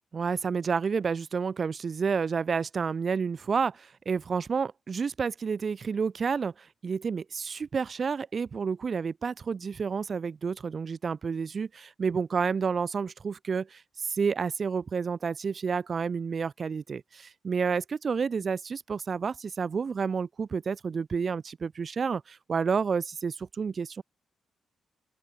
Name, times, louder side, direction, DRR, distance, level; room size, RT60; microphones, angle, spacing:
voice 1, 0.1-24.0, right 5 dB, 50° right, 1.7 m, -30 dB
open air
supercardioid pair, 60°, 0 cm